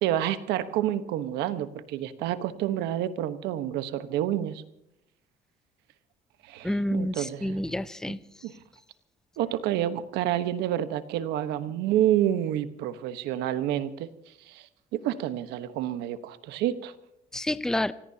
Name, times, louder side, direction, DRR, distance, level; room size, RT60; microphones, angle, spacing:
voice 1, 0.0-4.6 6.5-7.6 8.4-8.5 9.4-14.1 14.5-14.7 14.9-16.9, right 12 dB, 90° right, 12 dB, 1.2 m, -28 dB
voice 2, 6.6-8.2 17.3-17.9, left 1 dB, 5° left, 14 dB, 0.6 m, -29 dB
27.0 x 17.5 x 2.8 m, 0.83 s
cardioid pair, 110°, 17 cm